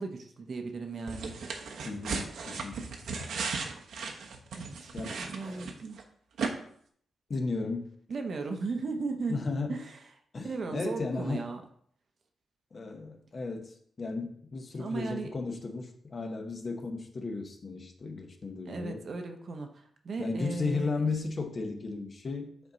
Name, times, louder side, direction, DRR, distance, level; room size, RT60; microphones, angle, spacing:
voice 1, 0.0-1.4 4.6-4.9 5.2-6.0 8.1-9.4 9.7-10.0 10.4-11.6 14.8-15.3 18.7-21.0, right 4 dB, 45° right, 5 dB, 0.9 m, -36 dB
sound 1, 1.1-6.0 6.4-6.5, right 5 dB, 80° right, 1.1 m, -36 dB
voice 2, 1.8-2.9 4.9-5.7 7.3-7.9 9.3-9.8 10.3-11.5 12.7-19.1 20.2-22.7, left 3 dB, 35° left, 3 dB, 1.0 m, -35 dB
9.4 x 4.3 x 4.0 m, 0.62 s
wide cardioid pair, 150°, 0 cm